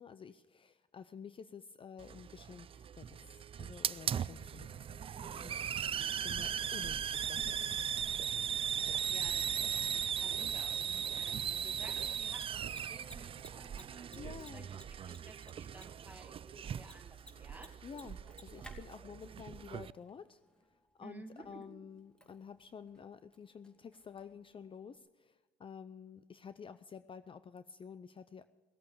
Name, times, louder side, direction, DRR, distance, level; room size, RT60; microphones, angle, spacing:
voice 1, 0.0-6.0 6.2-8.0 14.2-14.7 17.8-20.4 21.0-28.4, left 6 dB, 30° left, 13 dB, 0.6 m, -51 dB
Hiss, 2.0-19.9, right 8 dB, 35° right, 0.4 m, -38 dB
voice 2, 5.8-6.3 9.1-17.8 21.0-21.9, right 2 dB, 10° right, 5 dB, 2.1 m, -55 dB
sound 1, 6.3-14.0, right 11 dB, 65° right, 0.9 m, -58 dB
Mechanisms, 11.4-25.0, equal, 5° left, 2.7 m, -61 dB
18.0 x 8.6 x 8.5 m, 1.3 s
cardioid pair, 110°, 17 cm